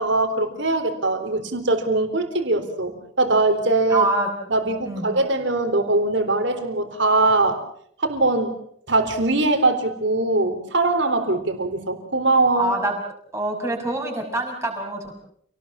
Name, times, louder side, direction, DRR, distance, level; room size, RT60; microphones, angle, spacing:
voice 1, 0.0-4.1 4.5-7.6 8.0-8.5 8.9-12.8, right 2 dB, 65° right, 7 dB, 4.0 m, -21 dB
voice 2, 3.9-4.3 4.8-5.1 12.6-12.9 13.3-15.2, right 2 dB, 15° right, 2 dB, 5.9 m, -25 dB
29.0 x 19.0 x 7.2 m, 0.65 s
head